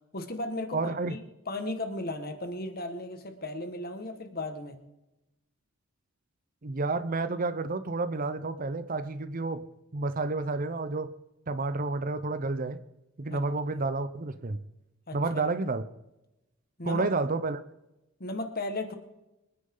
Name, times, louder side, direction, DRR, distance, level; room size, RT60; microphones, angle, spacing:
voice 1, 0.1-0.8 1.1-1.2 1.5-4.8 13.3-13.4 15.1-15.2 16.8-17.1 18.2-18.9, left 2 dB, 45° left, 7 dB, 1.6 m, -35 dB
voice 2, 0.7-1.2 6.6-9.6 9.9-11.1 11.5-12.8 13.2-14.6 15.1-15.8 16.8-17.6, right 3 dB, 40° right, 13 dB, 0.6 m, -30 dB
25.0 x 9.8 x 3.9 m, 0.96 s
head